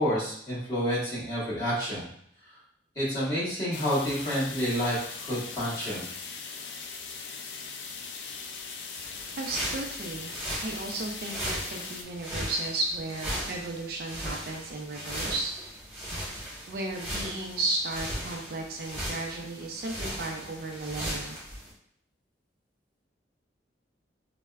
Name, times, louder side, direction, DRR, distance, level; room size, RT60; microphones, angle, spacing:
voice 1, 0.0-2.1 2.9-6.1, equal, 20° left, -10 dB, 1.4 m, -29 dB
sound 1, 3.7-12.0, left 5 dB, 75° left, 0.4 m, -40 dB
sound 2, 8.9-21.7, equal, 10° right, 1.0 m, -37 dB
voice 2, 9.4-10.3 10.6-15.5 16.7-21.4, right 2 dB, 55° right, 1 dB, 0.4 m, -34 dB
4.1 x 2.1 x 2.3 m, 0.68 s
head